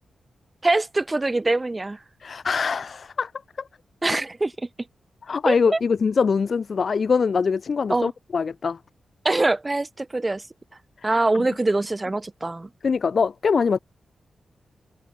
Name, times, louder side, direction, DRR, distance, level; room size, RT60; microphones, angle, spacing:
voice 1, 0.6-2.0 4.0-4.5 5.5-5.8 7.9-8.1 9.2-10.4 11.0-12.7, right 2 dB, 20° right, 2.3 m, -23 dB
voice 2, 2.2-3.3 5.2-8.8 11.0-11.2 12.8-13.8, left 5 dB, 50° left, 6.2 m, -23 dB
wide cardioid pair, 145°, 0 cm